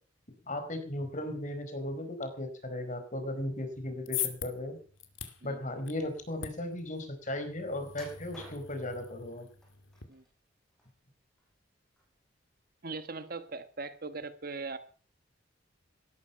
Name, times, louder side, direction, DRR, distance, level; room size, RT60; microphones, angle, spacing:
voice 1, 0.5-4.8 5.4-9.5, left 1 dB, 40° left, 8 dB, 4.6 m, -36 dB
sound 1, 3.7-10.0, left 11 dB, 90° left, 2.5 m, -42 dB
sound 2, 7.9-9.0 9.6-10.3 10.7-11.6 12.0-12.2 12.7-12.8, right 1 dB, 5° left, 6.6 m, -53 dB
voice 2, 12.8-14.8, right 3 dB, 50° right, 11 dB, 1.3 m, -40 dB
18.0 x 13.5 x 5.7 m, 0.43 s
head